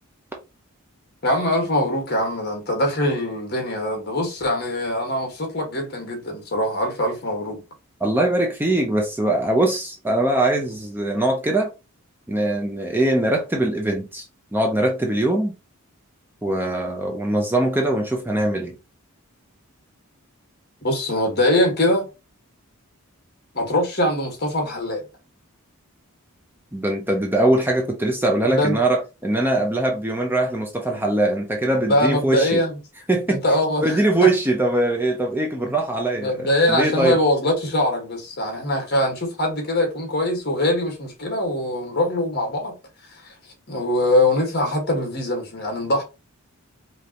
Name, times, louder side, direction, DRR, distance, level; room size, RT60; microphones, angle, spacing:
voice 1, 1.2-7.6 20.8-22.1 23.5-25.0 28.4-28.8 31.9-32.8 33.3-34.3 35.6-35.7 36.1-42.7 43.2-43.3 43.7-46.0, left 1 dB, 45° left, 1.6 m, -22 dB
voice 2, 8.0-11.7 12.3-14.3 14.5-15.6 16.4-18.7 26.7-32.6 33.1-33.4 33.8-37.2, right 1 dB, 10° right, 0.7 m, -22 dB
5.1 x 2.9 x 2.9 m
head